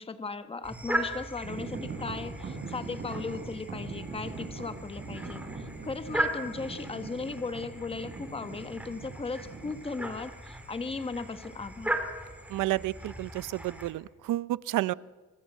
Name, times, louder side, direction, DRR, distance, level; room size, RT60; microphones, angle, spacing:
voice 1, 0.0-12.0, left 4 dB, 20° left, 10 dB, 1.3 m, -37 dB
sound 1, 0.6-13.9, right 1 dB, 5° right, 3.8 m, -38 dB
sound 2, 1.4-9.8, right 4 dB, 40° right, 7.2 m, -41 dB
voice 2, 12.5-14.9, right 16 dB, 80° right, 19 dB, 0.7 m, -30 dB
25.5 x 25.0 x 7.5 m, 1.3 s
cardioid pair, 130°, 31 cm